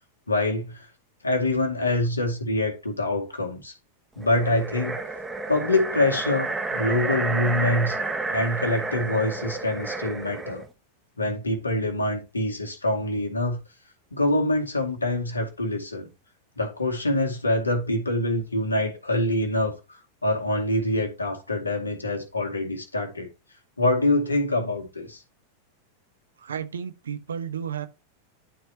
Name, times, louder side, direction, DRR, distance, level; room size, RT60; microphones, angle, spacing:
voice 1, 0.3-0.9 1.2-3.7 4.2-5.0 5.5-8.0 8.3-10.6 11.2-13.6 14.1-16.1 16.6-23.3 23.8-25.2, left 1 dB, 80° left, 2.1 m, -25 dB
sound 1, 4.2-10.7, right 3 dB, 10° right, 1.0 m, -30 dB
voice 2, 26.4-27.9, right 8 dB, 70° right, 1.0 m, -32 dB
11.5 x 4.6 x 2.8 m
figure-of-eight pair, 90°, 0 cm